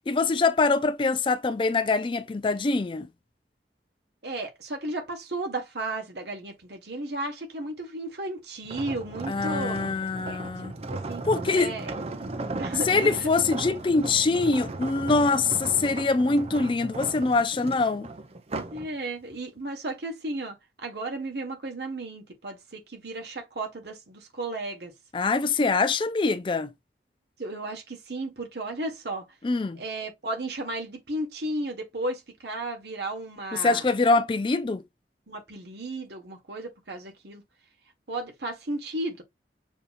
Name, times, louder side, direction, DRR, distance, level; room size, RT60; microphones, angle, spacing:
voice 1, 0.1-3.1 9.3-10.7 11.2-11.7 12.9-18.1 25.1-26.7 29.4-29.8 33.5-34.8, left 3 dB, 30° left, 0.4 m, -24 dB
voice 2, 4.2-9.8 10.3-11.2 11.5-11.9 12.6-13.3 18.7-24.9 27.4-29.3 29.8-34.1 35.3-37.4 38.1-39.2, right 2 dB, 70° right, 1.4 m, -34 dB
sound 1, 8.6-18.9 19.3-19.6, right 2 dB, 35° right, 0.6 m, -36 dB
6.8 x 2.9 x 2.5 m
head